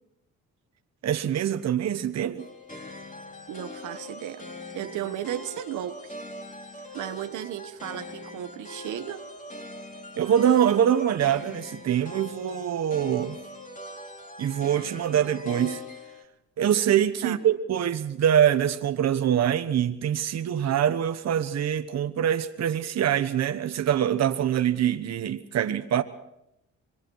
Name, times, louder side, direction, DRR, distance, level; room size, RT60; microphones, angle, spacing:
voice 1, 1.0-2.5 10.2-13.4 14.4-15.8 16.6-26.0, right 9 dB, 60° right, 1.2 m, -24 dB
sound 1, 2.4-16.2, left 2 dB, 25° left, 3.1 m, -42 dB
voice 2, 3.5-4.4 4.7-6.1 6.9-9.3 17.2-17.4, right 11 dB, 80° right, 1.3 m, -35 dB
26.0 x 21.0 x 4.8 m
cardioid pair, 90°, 30 cm